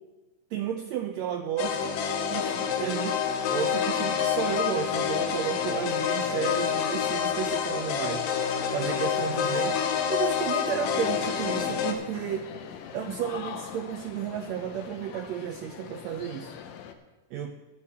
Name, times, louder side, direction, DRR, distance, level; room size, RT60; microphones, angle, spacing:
voice 1, 0.5-2.0 2.3-8.3 8.7-12.5 12.9-16.5 17.3-17.6, right 9 dB, 80° right, 5 dB, 1.6 m, -33 dB
sound 1, 1.6-11.9, left 7 dB, 90° left, 2.8 m, -27 dB
sound 2, 10.8-16.9, left 8 dB, 70° left, 1.9 m, -42 dB
17.0 x 10.0 x 3.6 m, 1.2 s
omnidirectional pair, 3.8 m